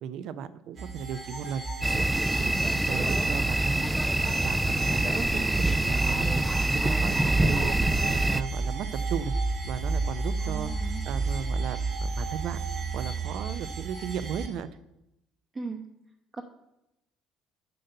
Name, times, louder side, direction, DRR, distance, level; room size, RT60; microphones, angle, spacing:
voice 1, 0.0-1.6 1.9-2.1 2.4-2.5 2.8-6.3 6.7-7.8 8.1-9.3 9.6-10.7 11.1-12.6 12.9-14.7, right 8 dB, 65° right, 14 dB, 0.6 m, -36 dB
sound 1, 0.8-14.5, right 3 dB, 45° right, 1.4 m, -31 dB
sound 2, 1.1-1.9 3.5-4.5, left 7 dB, 55° left, 1.0 m, -48 dB
sound 3, 1.8-8.4, right 1 dB, 10° right, 0.3 m, -26 dB
voice 2, 10.4-11.0 15.5-15.9 16.4-16.5, right 4 dB, 25° right, 2 dB, 0.8 m, -37 dB
7.7 x 6.7 x 5.4 m, 0.89 s
cardioid pair, 110°, 0 cm